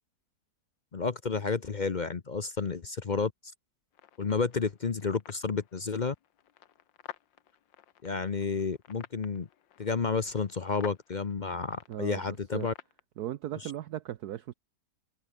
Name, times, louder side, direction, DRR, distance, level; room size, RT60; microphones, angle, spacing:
voice 1, 0.9-3.3 4.2-6.1 8.0-9.5 9.8-12.7 13.6-13.7, left 4 dB, 40° left, 0.6 m, -31 dB
sound 1, 3.9-13.0, left 10 dB, 90° left, 1.9 m, -52 dB
voice 2, 11.9-12.2 12.5-12.7 13.2-14.5, right 12 dB, 65° right, 1.2 m, -37 dB
omnidirectional pair, 2.0 m